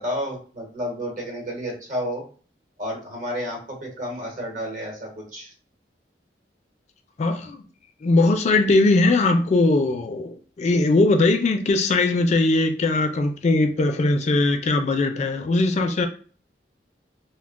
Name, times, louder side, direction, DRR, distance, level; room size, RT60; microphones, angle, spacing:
voice 1, 0.0-2.2 2.8-5.5, equal, 50° right, 1.0 m, -31 dB
voice 2, 7.2-7.6 8.0-16.1, left 2 dB, 40° left, 0.3 m, -20 dB
2.2 x 2.1 x 3.5 m
head